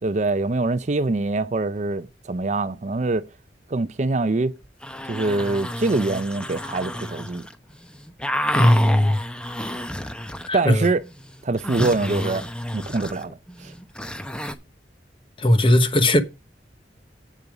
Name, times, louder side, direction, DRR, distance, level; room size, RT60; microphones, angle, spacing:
voice 1, 0.0-3.3 3.7-4.5 5.1-7.4 10.5-11.1 11.4-12.5 12.7-13.7, right 3 dB, 40° right, 0.5 m, -24 dB
sound 1, 4.6-7.5 7.8-10.7 11.0-14.5, equal, 5° left, 0.8 m, -30 dB
voice 2, 8.5-9.2 10.5-10.8 15.4-16.2, left 1 dB, 30° left, 1.0 m, -17 dB
8.4 x 6.8 x 5.0 m
head